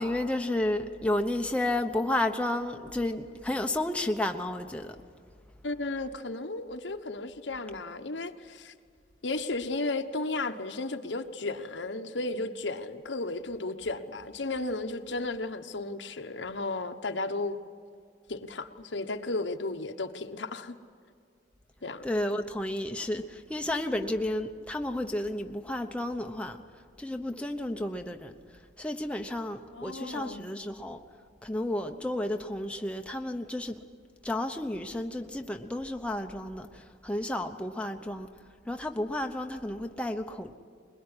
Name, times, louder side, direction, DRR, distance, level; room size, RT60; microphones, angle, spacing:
voice 1, 0.0-5.0 22.0-26.6 27.0-28.3 28.8-31.0 31.4-33.8 34.2-38.3 38.7-40.5, left 1 dB, 5° left, 0.9 m, -32 dB
voice 2, 5.6-8.7 9.2-17.6 18.3-20.7 21.8-22.0 29.7-30.4, left 2 dB, 75° left, 1.2 m, -34 dB
21.5 x 21.5 x 9.8 m
head